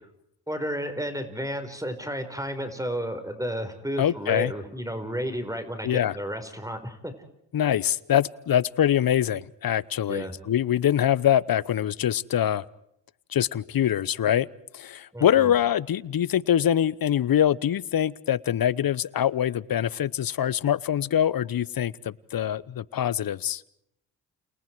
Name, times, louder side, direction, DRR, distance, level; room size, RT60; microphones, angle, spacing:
voice 1, 0.5-7.1 10.1-10.3 15.1-15.5, equal, 5° right, 8 dB, 4.8 m, -32 dB
voice 2, 4.0-4.5 5.8-6.2 7.5-12.6 13.3-14.5 14.7-23.7, left 10 dB, 50° left, 22 dB, 0.9 m, -24 dB
29.5 x 29.0 x 4.7 m, 0.79 s
supercardioid pair, 55°, 45 cm